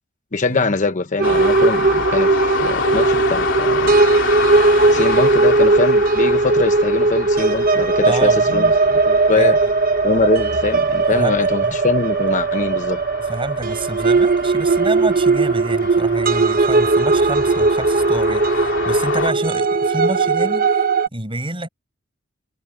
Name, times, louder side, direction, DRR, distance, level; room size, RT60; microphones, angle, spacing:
voice 1, 0.3-2.3 2.6-3.9 4.9-9.6 10.0-13.0, left 3 dB, 40° left, 1.0 m, -22 dB
sound 1, 1.2-19.3, left 4 dB, 65° left, 3.5 m, -28 dB
sound 2, 1.2-21.1, right 3 dB, 50° right, 1.0 m, -17 dB
voice 2, 8.0-8.8 9.3-9.5 11.1-11.8 13.2-21.7, right 2 dB, 25° right, 6.5 m, -28 dB
head